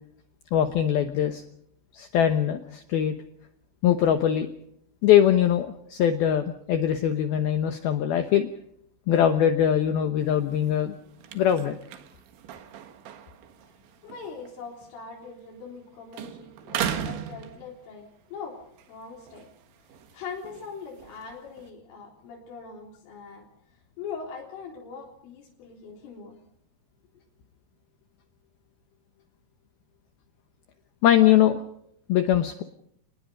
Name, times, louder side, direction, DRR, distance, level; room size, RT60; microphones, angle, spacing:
voice 1, 0.5-1.4 1.9-3.1 3.8-4.5 5.0-8.5 9.1-10.9 11.3-11.8 31.0-31.6 32.1-32.6, left 10 dB, 70° left, 7 dB, 2.5 m, -22 dB
sound 1, 10.2-15.9 16.1-18.2 18.6-21.7, right 9 dB, 75° right, 3.9 m, -38 dB
voice 2, 14.0-18.6 18.9-19.5 20.1-26.4, left 5 dB, 90° left, -2 dB, 6.2 m, -41 dB
28.5 x 20.0 x 5.2 m, 0.70 s
omnidirectional pair, 5.5 m